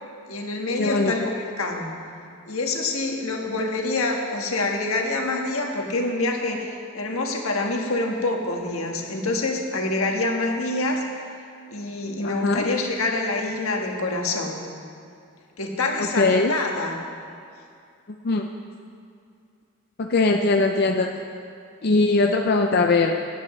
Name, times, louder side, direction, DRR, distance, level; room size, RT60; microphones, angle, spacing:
voice 1, 0.3-1.9 2.4-11.0 11.7-14.6 15.6-17.0, left 2 dB, 80° left, 1 dB, 1.4 m, -26 dB
voice 2, 0.8-1.1 12.2-12.6 16.0-16.5 18.2-18.5 20.0-21.1 21.8-23.2, left 3 dB, 45° left, 3 dB, 0.5 m, -20 dB
17.5 x 10.5 x 3.2 m, 2.4 s
head